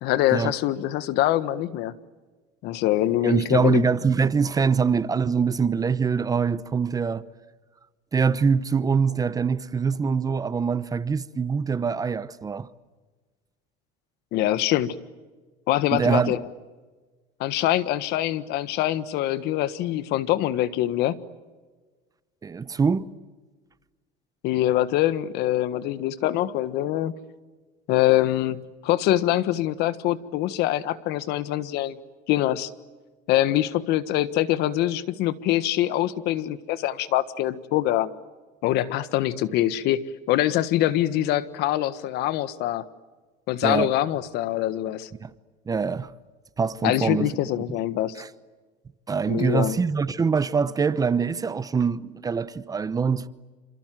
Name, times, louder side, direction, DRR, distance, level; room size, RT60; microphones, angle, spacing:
voice 1, 0.0-1.9 2.6-3.8 14.3-14.9 15.7-16.4 17.4-21.2 24.4-27.1 27.9-32.0 32.3-32.7 33.3-38.1 38.6-40.0 40.3-42.8 43.5-45.1 46.8-48.1 49.3-49.8, left 14 dB, 65° left, 1.5 m, -24 dB
voice 2, 3.2-7.2 8.1-12.7 15.9-16.4 22.4-23.1 43.6-43.9 45.2-45.3 45.7-46.1 46.6-47.3 48.2-48.3 49.1-53.3, right 5 dB, 20° right, 0.9 m, -24 dB
28.0 x 27.0 x 7.7 m
cardioid pair, 135°, 18 cm